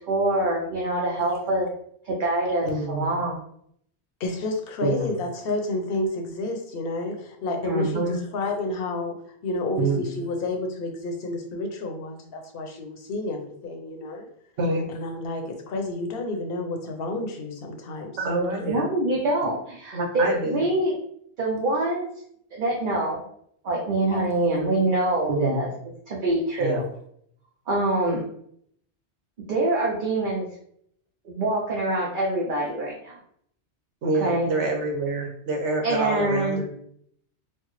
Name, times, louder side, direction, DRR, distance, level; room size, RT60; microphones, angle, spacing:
voice 1, 0.1-1.7 2.0-3.4 7.6-8.1 18.7-21.0 21.4-22.1 22.5-23.2 23.6-25.7 26.1-26.8 27.7-28.2 29.5-30.5 31.2-33.2 34.2-34.5 35.8-36.6, right 2 dB, 50° right, -3 dB, 0.8 m, -25 dB
voice 2, 2.6-3.1 4.8-5.1 9.8-10.0 14.6-14.8 18.2-18.9 19.9-20.6 25.3-25.7 26.6-26.9 34.0-36.7, right 2 dB, 80° right, 2 dB, 1.1 m, -26 dB
voice 3, 4.2-9.1 9.4-14.3 14.9-18.7 24.1-24.2, left 2 dB, 60° left, 3 dB, 0.9 m, -30 dB
4.3 x 2.0 x 3.0 m, 0.68 s
omnidirectional pair, 1.2 m